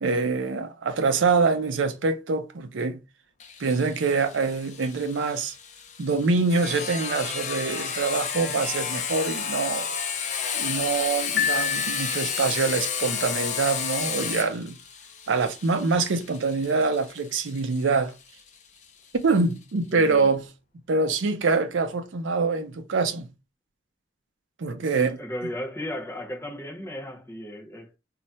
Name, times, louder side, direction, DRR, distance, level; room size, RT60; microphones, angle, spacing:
voice 1, 0.0-3.0 3.6-5.5 6.0-9.9 10.5-14.8 15.3-18.1 19.2-20.5 20.9-23.3 24.6-25.2, right 4 dB, 80° right, 0.5 m, -25 dB
Sawing, 3.4-18.8, left 7 dB, 40° left, 0.4 m, -32 dB
Piano, 11.4-12.7, left 8 dB, 60° left, 1.2 m, -28 dB
voice 2, 19.9-20.3 24.9-28.0, equal, 15° left, 0.7 m, -35 dB
2.3 x 2.1 x 3.9 m
head